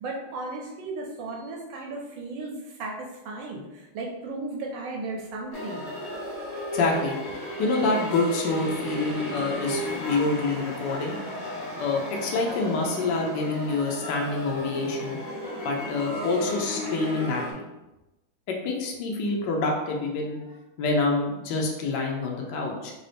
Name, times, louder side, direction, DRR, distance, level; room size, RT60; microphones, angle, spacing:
voice 1, 0.0-5.9, right 2 dB, 75° right, -1 dB, 1.2 m, -35 dB
sound 1, 5.5-17.5, left 1 dB, 50° left, 1.3 m, -34 dB
voice 2, 6.7-7.1 7.6-11.2 11.8-15.2 15.6-17.6 18.5-20.4 20.8-22.9, left 3 dB, 70° left, 0 dB, 1.1 m, -27 dB
sound 2, 8.5-13.7, left 1 dB, 15° right, 0.8 m, -41 dB
3.9 x 2.3 x 3.3 m, 1.0 s
omnidirectional pair, 2.4 m